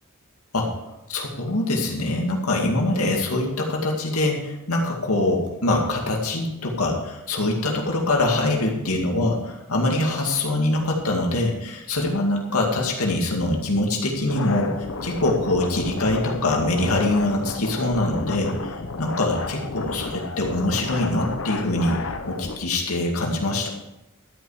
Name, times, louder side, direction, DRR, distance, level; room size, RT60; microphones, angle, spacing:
voice 1, 1.1-22.0 22.3-23.7, left 2 dB, 90° left, 0 dB, 2.2 m, -24 dB
sound 1, 14.3-22.6, left 3 dB, 65° left, 0.9 m, -32 dB
12.5 x 8.8 x 4.9 m, 0.95 s
head